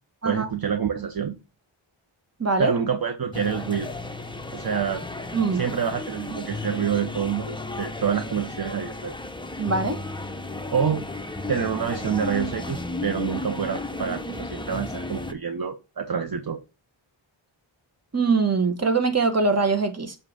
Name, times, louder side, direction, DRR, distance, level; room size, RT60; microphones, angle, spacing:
voice 1, 0.2-1.4 2.6-3.9 4.5-5.0 5.5-9.1 10.7-11.1 11.5-16.6, right 7 dB, 45° right, 0.8 m, -27 dB
voice 2, 2.4-2.7 5.3-5.6 9.6-10.0 18.1-20.1, right 4 dB, 30° right, 1.1 m, -22 dB
sound 1, 3.3-15.3, left 2 dB, 10° left, 0.6 m, -34 dB
7.6 x 2.8 x 4.9 m
wide cardioid pair, 85°, 50 cm